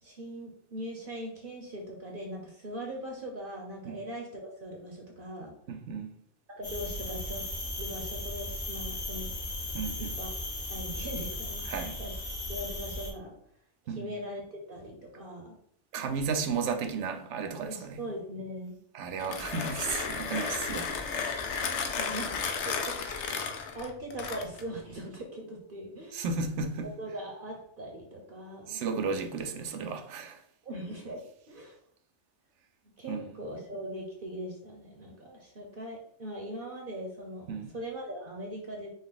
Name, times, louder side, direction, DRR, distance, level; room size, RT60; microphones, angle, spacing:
voice 1, 0.0-5.5 6.6-7.4 7.7-9.3 10.2-10.3 10.6-12.2 12.5-13.3 13.9-15.6 17.7-18.8 21.6-22.4 22.6-23.2 23.7-26.2 27.0-28.8 30.6-31.2 31.5-31.8 33.0-38.9, equal, 50° right, 0.9 m, -40 dB
voice 2, 5.7-6.2 9.7-10.2 11.6-12.0 13.9-14.1 15.9-18.0 18.9-21.5 26.1-26.9 28.7-30.4 33.1-33.4 37.5-37.7, right 5 dB, 80° right, 0.9 m, -34 dB
sound 1, 6.6-13.1, left 1 dB, 40° left, 1.2 m, -36 dB
Mechanisms, 19.1-24.7, left 5 dB, 75° left, 0.9 m, -33 dB
5.4 x 2.3 x 3.8 m
omnidirectional pair, 1.2 m